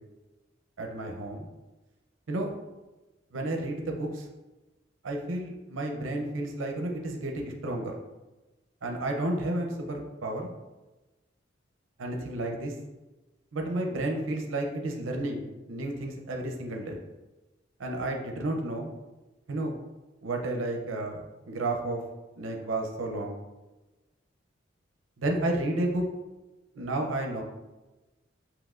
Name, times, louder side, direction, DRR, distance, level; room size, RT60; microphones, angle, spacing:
voice 1, 0.8-1.5 2.3-2.5 3.3-4.3 5.0-8.0 8.8-10.5 12.0-12.8 13.5-17.0 17.8-18.9 19.5-19.7 20.2-22.0 22.4-23.4 25.2-26.1 26.8-27.4, right 1 dB, 90° right, 2 dB, 0.6 m, -31 dB
7.4 x 2.9 x 2.4 m, 1.1 s
head